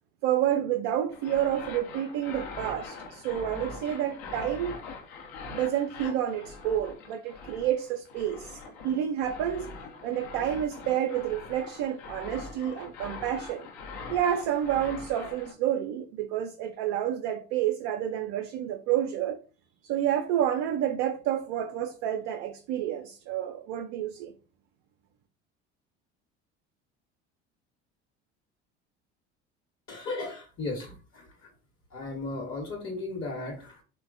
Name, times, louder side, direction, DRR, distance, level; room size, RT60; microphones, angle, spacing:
voice 1, 0.2-4.8 5.5-9.7 10.0-13.7 14.1-19.4 19.8-24.3, right 10 dB, 55° right, 0.4 m, -29 dB
sound 1, 1.1-15.5, left 4 dB, 55° left, 0.8 m, -43 dB
voice 2, 29.9-31.5 31.9-33.8, left 2 dB, 35° left, 1.0 m, -36 dB
3.2 x 2.2 x 2.4 m
hypercardioid pair, 65°, 34 cm